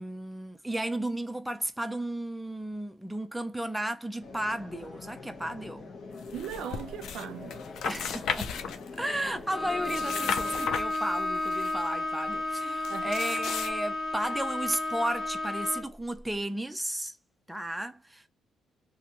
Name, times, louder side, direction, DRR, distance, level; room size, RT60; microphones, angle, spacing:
voice 1, 0.0-5.9 7.8-17.2 17.5-18.3, right 1 dB, 5° right, 0.5 m, -34 dB
sound 1, 4.2-10.6, left 4 dB, 50° left, 0.9 m, -44 dB
sound 2, 6.3-7.2 7.5-9.2 9.7-11.7 12.8-13.7, left 7 dB, 75° left, 0.4 m, -35 dB
voice 2, 6.3-7.6 12.9-13.1, right 9 dB, 80° right, 0.5 m, -38 dB
Bowed string instrument, 9.5-16.0, left 2 dB, 20° left, 1.1 m, -32 dB
2.5 x 2.2 x 2.9 m
cardioid pair, 90°, 0 cm